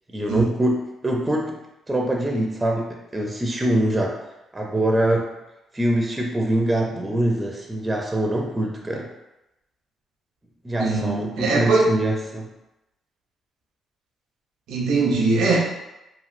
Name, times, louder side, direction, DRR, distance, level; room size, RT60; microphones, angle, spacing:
voice 1, 0.1-1.6 1.9-4.2 4.5-5.3 5.7-9.1 10.6-12.5, right 1 dB, 15° right, 0 dB, 0.4 m, -24 dB
voice 2, 10.8-11.9 14.7-15.6, right 3 dB, 90° right, -2 dB, 0.6 m, -21 dB
2.9 x 2.6 x 2.5 m, 0.93 s
cardioid pair, 90°, 0 cm